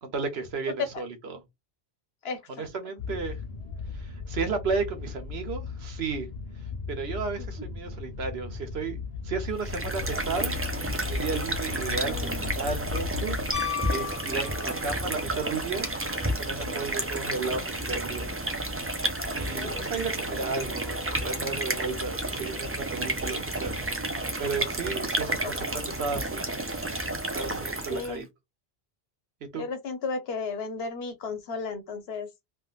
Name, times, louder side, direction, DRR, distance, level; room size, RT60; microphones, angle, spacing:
voice 1, 0.0-1.4 2.5-3.4 3.9-6.3 6.9-15.9 16.4-18.3 19.3-23.8 24.4-26.4 27.3-28.3 29.5-29.6, right 4 dB, 80° right, 1.1 m, -33 dB
voice 2, 2.2-2.7 7.4-7.5 12.0-12.5 14.5-14.7 16.6-16.7 19.4-19.9 25.4-25.7 27.9-28.3 29.5-32.3, left 4 dB, 75° left, 1.1 m, -35 dB
sound 1, 3.0-13.5, left 5 dB, 45° left, 0.7 m, -36 dB
sound 2, 9.5-28.2, right 1 dB, 25° right, 0.3 m, -31 dB
Piano, 13.5-15.1 17.5-17.6, left 9 dB, 20° left, 1.0 m, -34 dB
3.5 x 2.4 x 2.4 m
omnidirectional pair, 1.0 m